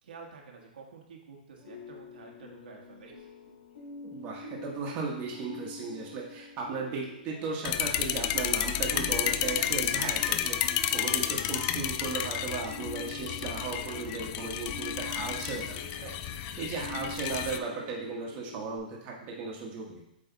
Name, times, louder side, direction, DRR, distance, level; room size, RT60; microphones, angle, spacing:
voice 1, 0.0-3.3 11.0-11.3 16.3-16.6, right 5 dB, 75° right, 0 dB, 1.4 m, -50 dB
sound 1, 1.6-18.8, left 2 dB, 70° left, 2.5 m, -46 dB
voice 2, 4.0-16.1 16.6-20.0, right 4 dB, 35° right, -2 dB, 1.3 m, -36 dB
sound 2, 7.6-17.6, left 11 dB, 35° left, 0.4 m, -31 dB
7.9 x 3.3 x 4.0 m, 0.85 s
hypercardioid pair, 140°, 5 cm